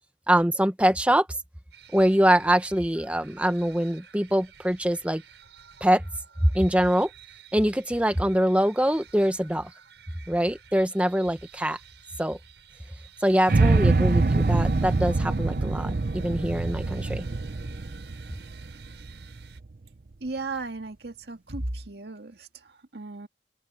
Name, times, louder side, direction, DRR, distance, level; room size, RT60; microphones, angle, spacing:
voice 1, 0.3-1.3 1.9-5.2 5.8-6.0 6.4-7.1 7.5-9.7 10.3-11.8 12.2-12.4 13.2-17.2, right 1 dB, 5° right, 0.9 m, -23 dB
sound 1, 1.7-19.6, right 7 dB, 90° right, 6.2 m, -52 dB
sound 2, 13.5-19.6, right 3 dB, 50° right, 0.6 m, -24 dB
voice 2, 20.2-23.3, right 2 dB, 70° right, 1.9 m, -35 dB
open air
head